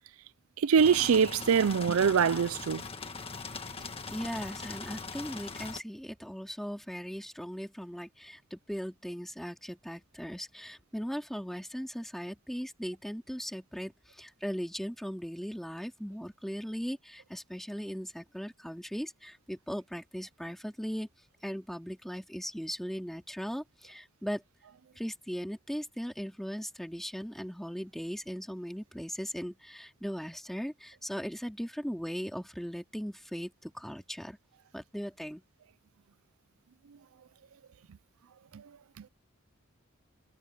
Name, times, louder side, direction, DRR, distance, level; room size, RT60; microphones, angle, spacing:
voice 1, 0.6-2.8 38.5-38.6 39.0-39.1, right 6 dB, 75° right, 0.4 m, -24 dB
sound 1, 0.8-5.8, left 4 dB, 25° left, 1.7 m, -41 dB
voice 2, 3.8-21.1 21.4-24.4 25.0-34.4 34.7-35.4, equal, ahead, 2.7 m, -38 dB
head